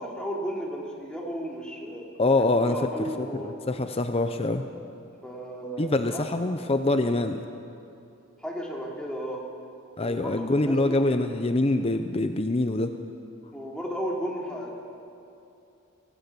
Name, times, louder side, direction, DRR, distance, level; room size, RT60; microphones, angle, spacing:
voice 1, 0.0-2.0 2.6-3.5 5.2-6.3 8.4-9.4 10.0-11.0 13.5-14.9, equal, 5° left, -3 dB, 3.1 m, -34 dB
voice 2, 2.2-4.7 5.8-7.4 10.0-12.9, left 2 dB, 30° left, 8 dB, 0.7 m, -25 dB
24.5 x 17.5 x 7.0 m, 2.7 s
head